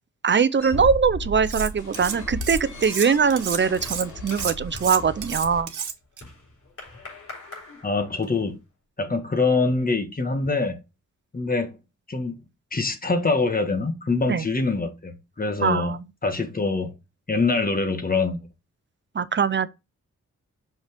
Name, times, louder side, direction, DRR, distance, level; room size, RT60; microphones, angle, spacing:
voice 1, 0.2-5.7 14.3-14.4 15.6-16.0 19.1-19.7, right 6 dB, 40° right, 0.6 m, -22 dB
sound 1, 0.6-5.6, left 1 dB, 85° left, 4.4 m, -35 dB
Cutlery silverware, 1.5-2.1 2.4-6.2, right 7 dB, 90° right, 1.2 m, -31 dB
sound 2, 3.8-8.6, left 2 dB, 45° left, 4.1 m, -46 dB
voice 2, 7.8-8.6 9.0-10.8 11.3-11.7 12.1-12.4 12.7-15.9 16.2-16.9 17.3-18.4, left 3 dB, 30° left, 1.4 m, -24 dB
5.9 x 5.3 x 3.5 m
wide cardioid pair, 95°, 30 cm